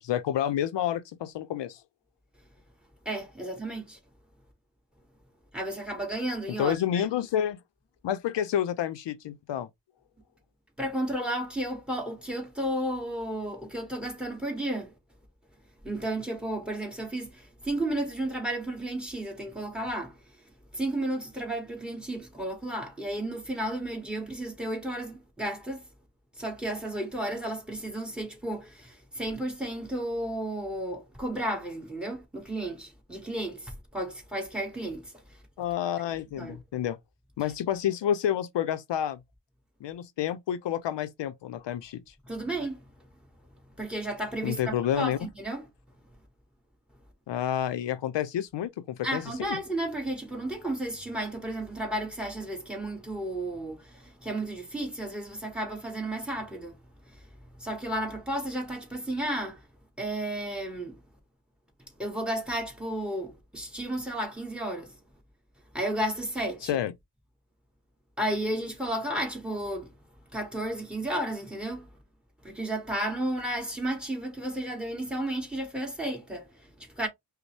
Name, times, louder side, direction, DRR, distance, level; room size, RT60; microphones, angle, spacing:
voice 1, 0.0-1.8 6.6-7.6 8.0-9.7 35.6-37.0 37.4-39.2 39.8-42.1 44.4-45.2 47.3-49.6 66.7-66.9, left 10 dB, 80° left, 0.5 m, -29 dB
voice 2, 3.0-4.0 5.5-6.7 10.8-14.9 15.8-20.2 20.7-25.8 26.4-35.1 36.3-36.6 42.2-42.8 43.8-45.6 49.0-56.8 57.1-57.2 57.6-59.6 60.0-61.0 62.0-65.0 65.7-66.7 68.2-69.9 70.3-71.9 72.4-77.1, right 1 dB, ahead, 1.5 m, -33 dB
5.2 x 2.1 x 3.2 m
wide cardioid pair, 130°, 42 cm